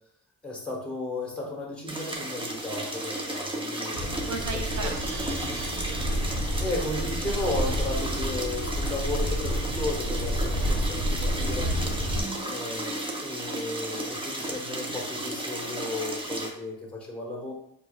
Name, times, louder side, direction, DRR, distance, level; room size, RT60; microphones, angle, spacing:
voice 1, 0.4-4.1 4.8-4.9 6.6-11.7 12.5-17.5, left 2 dB, 5° left, -3 dB, 1.3 m, -34 dB
sound 1, 1.9-16.5, right 1 dB, 15° right, 0.8 m, -34 dB
sound 2, 3.9-12.2, equal, 85° right, 1.1 m, -29 dB
voice 2, 4.3-6.2 12.1-12.6, right 4 dB, 50° right, 4 dB, 0.8 m, -38 dB
4.4 x 2.5 x 2.4 m, 0.72 s
supercardioid pair, 55°, 38 cm